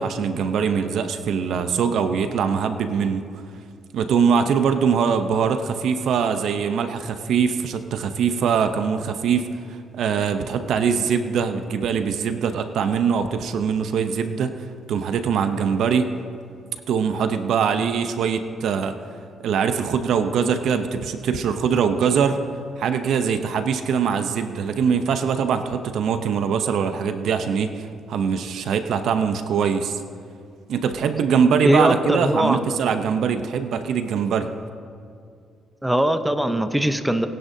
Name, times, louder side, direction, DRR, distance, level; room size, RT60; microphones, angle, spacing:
voice 1, 0.0-3.3 3.9-9.5 9.9-14.5 14.9-16.1 16.9-18.9 19.4-22.4 22.8-30.0 30.7-34.5, right 6 dB, 75° right, 8 dB, 0.7 m, -22 dB
voice 2, 31.6-32.6 35.8-37.3, right 1 dB, 5° right, 8 dB, 0.7 m, -20 dB
20.5 x 10.0 x 2.7 m, 2.3 s
cardioid pair, 90°, 0 cm